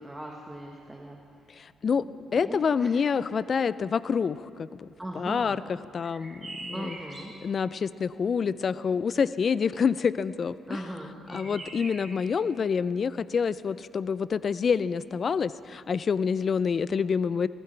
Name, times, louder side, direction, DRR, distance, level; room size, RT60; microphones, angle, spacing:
voice 1, 0.0-1.5 2.0-2.1 2.3-3.1 5.0-5.6 6.7-7.3 10.7-11.7, right 1 dB, 10° right, 0 dB, 1.3 m, -40 dB
voice 2, 1.6-2.0 2.3-4.9 5.2-5.6 5.9-6.9 7.4-10.6 11.3-17.5, left 6 dB, 45° left, 16 dB, 0.4 m, -27 dB
sound 1, 6.0-7.5 11.3-12.2, right 2 dB, 30° right, 3.2 m, -42 dB
18.5 x 15.0 x 3.3 m, 2.4 s
cardioid pair, 90°, 0 cm